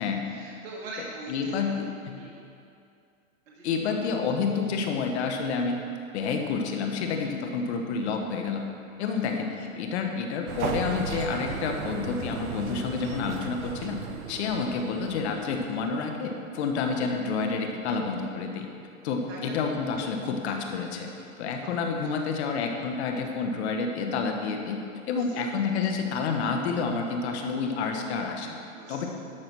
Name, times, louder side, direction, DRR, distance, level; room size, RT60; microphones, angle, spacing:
voice 1, 0.2-1.6 2.1-2.4 3.5-4.0 7.3-7.4 9.0-9.2 19.3-19.7 21.1-21.3 22.0-22.1 25.1-25.7 28.7-29.1, right 2 dB, 65° right, -4 dB, 1.6 m, -43 dB
voice 2, 1.3-2.2 3.6-5.8 6.1-8.7 9.0-14.0 14.3-18.7 19.0-21.1 21.4-24.8 25.1-28.6 28.9-29.1, left 5 dB, 50° left, 3 dB, 1.3 m, -29 dB
sound 1, 10.5-15.9, right 6 dB, 85° right, 1.0 m, -36 dB
12.0 x 4.8 x 6.1 m, 2.5 s
hypercardioid pair, 145°, 42 cm